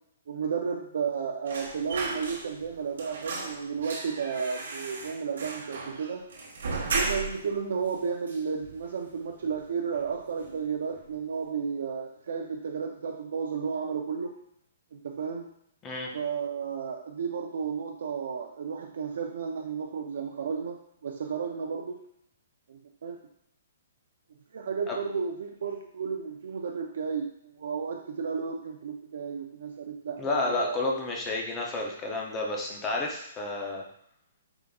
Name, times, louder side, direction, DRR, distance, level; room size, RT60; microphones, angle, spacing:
voice 1, 0.3-6.2 6.9-14.3 14.9-15.5 16.1-22.0 22.7-23.2 24.5-30.8, right 6 dB, 55° right, 2 dB, 0.4 m, -33 dB
sound 1, 1.5-2.7 3.0-7.5 7.9-8.0 8.3-9.1 9.4-9.6 9.9-10.6 10.9-11.1, right 4 dB, 80° right, 0.9 m, -35 dB
voice 2, 30.2-33.8, left 2 dB, 10° left, -1 dB, 0.5 m, -31 dB
4.9 x 3.5 x 2.3 m, 0.70 s
hypercardioid pair, 180°, 0 cm